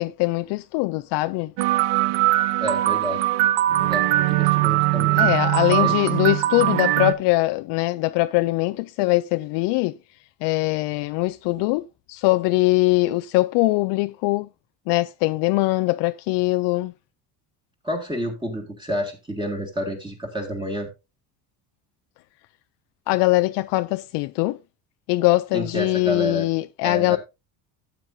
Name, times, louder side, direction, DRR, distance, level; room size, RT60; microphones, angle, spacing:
voice 1, 0.0-1.5 5.2-10.0 10.4-11.8 12.1-14.5 14.9-16.9 23.1-24.6 25.1-27.2, left 21 dB, 70° left, 0.5 m, -22 dB
sound 1, 1.6-7.1, right 15 dB, 80° right, 0.9 m, -21 dB
voice 2, 2.6-3.3 3.8-5.4 5.6-6.0 17.8-20.9 25.5-26.5 26.8-27.2, equal, 10° right, 1.9 m, -29 dB
12.5 x 8.1 x 2.6 m
cardioid pair, 120°, 42 cm